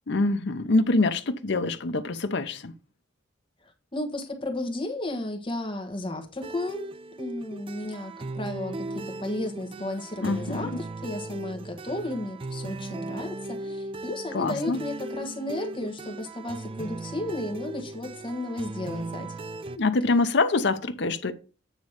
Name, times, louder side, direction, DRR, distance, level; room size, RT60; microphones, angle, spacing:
voice 1, 0.1-2.7 10.2-10.7 14.3-14.8 19.8-21.3, left 3 dB, 65° left, 0.7 m, -25 dB
voice 2, 3.9-6.9 7.2-19.3, left 1 dB, 25° left, 1.4 m, -33 dB
sound 1, 6.4-19.8, right 2 dB, 30° right, 0.4 m, -37 dB
9.1 x 3.1 x 6.4 m
head